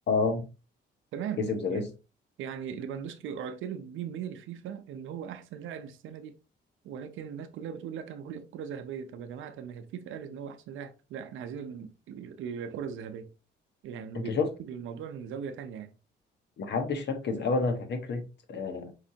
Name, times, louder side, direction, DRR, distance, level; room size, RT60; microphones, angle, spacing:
voice 1, 0.1-0.4 1.4-1.9 14.1-14.5 16.6-18.9, left 4 dB, 60° left, 1.1 m, -29 dB
voice 2, 1.1-1.4 1.7-1.8 2.4-6.4 6.8-13.3 13.8-14.3 14.6-15.9, right 8 dB, 80° right, 0.6 m, -39 dB
5.2 x 3.3 x 2.7 m
cardioid pair, 90°, 20 cm